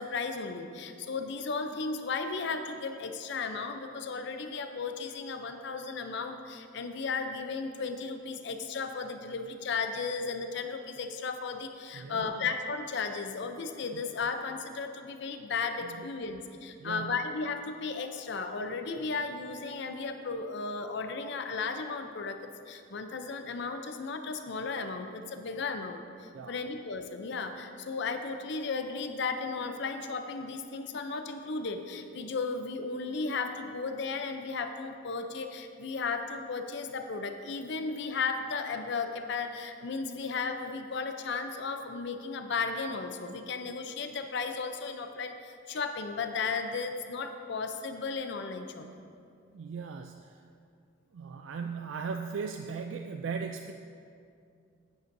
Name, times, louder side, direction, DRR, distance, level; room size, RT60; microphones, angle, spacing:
voice 1, 0.0-49.1, left 4 dB, 60° left, 7 dB, 0.5 m, -35 dB
voice 2, 11.9-12.5 13.9-14.0 15.8-16.1 16.8-17.2 26.3-26.6 49.5-50.4 51.1-53.7, right 5 dB, 80° right, 5 dB, 0.4 m, -38 dB
9.8 x 9.3 x 2.6 m, 2.4 s
head